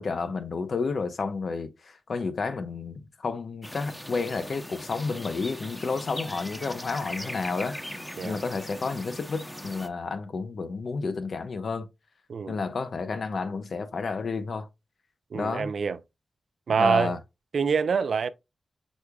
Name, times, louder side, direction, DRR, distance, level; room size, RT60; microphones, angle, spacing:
voice 1, 0.0-11.9 12.5-14.7 15.3-15.7 16.8-17.2, left 4 dB, 65° left, 0.6 m, -31 dB
sound 1, 3.6-9.9, equal, 10° left, 0.7 m, -40 dB
voice 2, 15.3-16.0 16.7-17.1 17.5-18.3, right 6 dB, 75° right, 0.4 m, -25 dB
6.2 x 3.4 x 2.3 m
cardioid pair, 65°, 0 cm